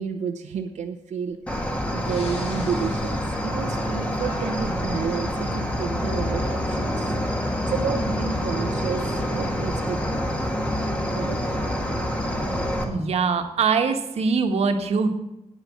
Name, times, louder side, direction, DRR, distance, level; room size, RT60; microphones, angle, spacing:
voice 1, 0.0-1.6 1.9-7.2 7.7-10.6 11.1-11.4, right 7 dB, 90° right, 3 dB, 0.8 m, -31 dB
Breathing, 1.3-1.5 1.9-3.9 4.2-5.3, left 4 dB, 60° left, 1.4 m, -43 dB
Cricket, 1.5-12.8, equal, 10° left, 1.6 m, -26 dB
voice 2, 12.9-15.1, right 5 dB, 65° right, 6 dB, 1.3 m, -22 dB
9.6 x 9.3 x 7.3 m, 0.89 s
wide cardioid pair, 175°, 12 cm